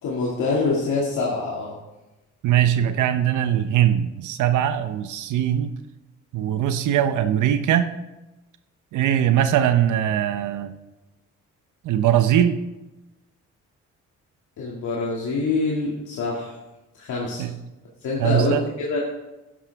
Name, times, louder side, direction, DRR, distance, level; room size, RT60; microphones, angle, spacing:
voice 1, 0.0-1.8 14.6-16.5 17.0-17.5 18.0-19.0, left 3 dB, 75° left, -4 dB, 2.2 m, -25 dB
voice 2, 2.4-5.7 6.3-7.9 8.9-10.7 11.8-12.6 17.4-17.5 18.2-18.6, right 10 dB, 80° right, 10 dB, 0.8 m, -21 dB
11.5 x 11.0 x 3.5 m, 1.0 s
cardioid pair, 90°, 30 cm